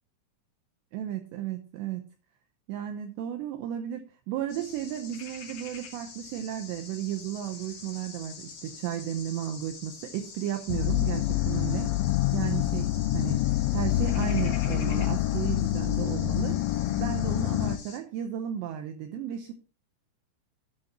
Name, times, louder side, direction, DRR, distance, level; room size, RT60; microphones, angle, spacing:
voice 1, 0.9-2.1 2.7-11.9 12.3-12.9 13.1-16.7 16.9-19.5, right 10 dB, 75° right, 6 dB, 2.7 m, -34 dB
sound 1, 4.5-18.0, left 5 dB, 45° left, 3.5 m, -46 dB
sound 2, 10.7-17.8, left 15 dB, 90° left, 3.2 m, -27 dB
11.5 x 9.1 x 2.9 m, 0.35 s
omnidirectional pair, 5.6 m